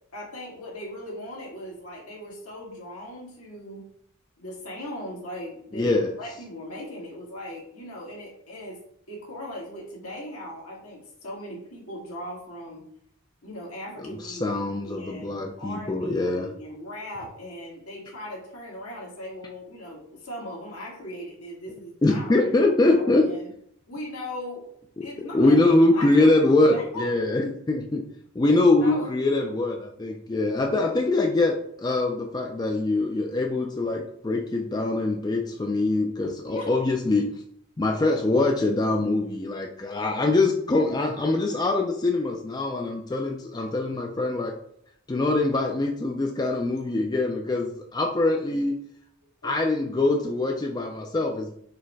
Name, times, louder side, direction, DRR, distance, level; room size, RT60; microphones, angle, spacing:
voice 1, 0.1-3.8 4.4-8.8 9.1-12.8 13.4-14.6 14.8-23.5 23.9-24.7 25.0-27.3 28.5-29.1 36.4-36.7 49.4-49.5, left 1 dB, 85° left, -3 dB, 1.6 m, -38 dB
voice 2, 5.7-6.1 14.0-16.5 22.0-23.3 25.3-28.0 28.4-37.3 37.8-44.5 45.1-48.8 49.4-51.6, left 2 dB, 20° left, 2 dB, 0.3 m, -23 dB
4.5 x 2.1 x 4.6 m, 0.68 s
head